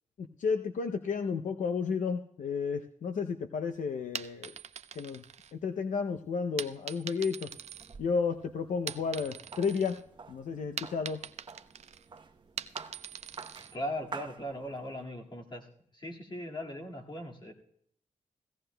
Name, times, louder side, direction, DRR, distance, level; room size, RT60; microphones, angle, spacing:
voice 1, 0.2-4.6 4.9-5.2 5.5-7.5 8.0-10.0 10.3-11.2, left 5 dB, 75° left, 7 dB, 0.6 m, -32 dB
sound 1, 4.0-5.9 6.6-8.4 8.7-10.0 10.3-13.8, right 7 dB, 60° right, 0.5 m, -42 dB
sound 2, 7.5-15.0, right 4 dB, 35° right, 0.8 m, -49 dB
voice 2, 13.7-15.7 15.9-17.5, equal, 35° left, 0 dB, 2.0 m, -39 dB
16.5 x 16.0 x 2.2 m, 0.69 s
wide cardioid pair, 105°, 13 cm